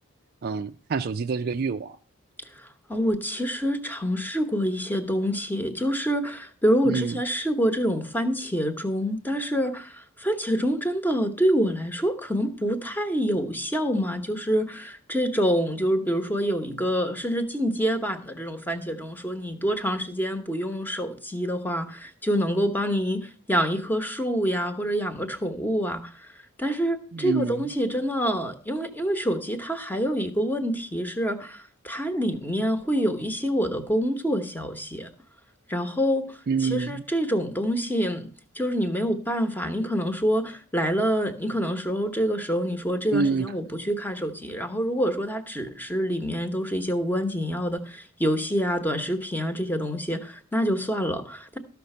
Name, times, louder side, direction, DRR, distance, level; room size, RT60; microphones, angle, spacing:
voice 1, 0.4-2.0 6.9-7.2 27.1-27.7 36.5-37.0 43.1-43.5, right 4 dB, 45° right, 0.4 m, -27 dB
voice 2, 2.6-35.1 35.7-38.3 38.5-51.6, equal, 10° left, 1.0 m, -26 dB
13.5 x 5.9 x 5.5 m
head